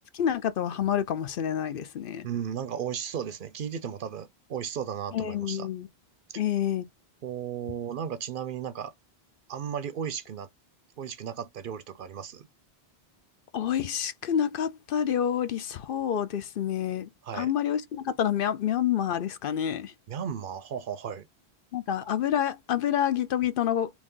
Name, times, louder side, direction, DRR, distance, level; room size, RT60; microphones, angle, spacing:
voice 1, 0.1-2.3 5.1-5.9 6.4-6.8 13.5-19.9 21.7-23.9, left 9 dB, 65° left, 0.7 m, -28 dB
voice 2, 2.2-5.7 6.3-6.4 7.2-8.9 9.5-10.5 11.0-12.5 17.2-17.5 20.1-21.3, right 8 dB, 65° right, 0.7 m, -35 dB
4.0 x 3.0 x 3.6 m
omnidirectional pair, 1.0 m